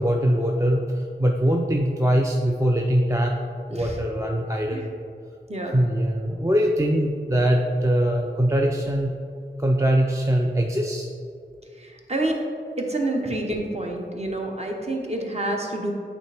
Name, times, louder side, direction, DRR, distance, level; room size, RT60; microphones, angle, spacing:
voice 1, 0.0-3.4 3.7-4.9 5.6-9.1 9.6-11.1, equal, 15° right, 0 dB, 0.4 m, -22 dB
voice 2, 5.5-5.8 11.8-12.4 12.8-15.9, right 1 dB, 35° right, 0 dB, 0.9 m, -28 dB
8.3 x 3.5 x 3.3 m, 2.4 s
wide cardioid pair, 55°, 19 cm